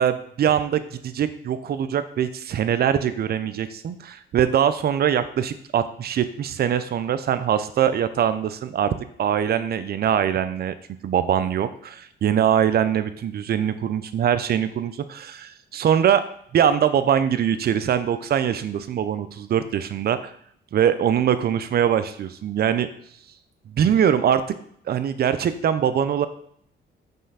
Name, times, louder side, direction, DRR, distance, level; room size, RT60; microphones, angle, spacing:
voice 1, 0.0-10.7 11.0-16.2 16.5-20.3 20.7-22.9 23.7-24.4 24.9-26.3, right 9 dB, 50° right, 12 dB, 0.5 m, -22 dB
5.4 x 3.3 x 5.6 m, 0.66 s
cardioid pair, 90°, 20 cm